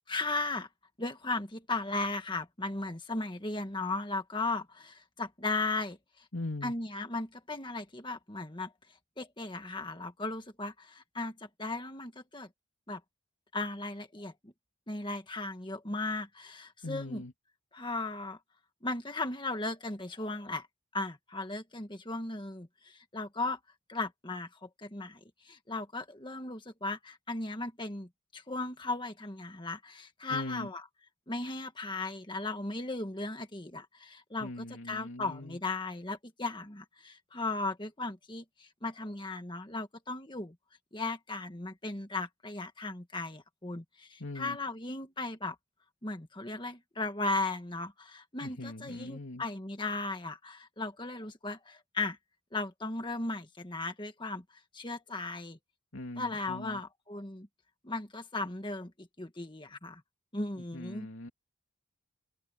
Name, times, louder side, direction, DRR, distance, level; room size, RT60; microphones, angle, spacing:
voice 1, 0.1-0.7 1.0-6.2 6.6-8.7 9.2-12.5 12.9-13.0 13.5-14.5 14.9-17.2 17.7-18.4 18.8-20.7 20.9-23.6 23.9-30.8 31.3-34.5 34.9-40.5 40.9-45.5 46.0-52.2 52.5-54.4 54.7-55.6 56.2-57.5 57.8-60.0 60.3-61.1, left 3 dB, 20° left, 1.6 m, -36 dB
voice 2, 6.3-6.7 16.8-17.3 30.3-30.7 34.4-35.6 44.2-44.6 48.4-49.5 55.9-56.8 60.6-61.3, left 2 dB, 65° left, 2.7 m, -41 dB
open air
head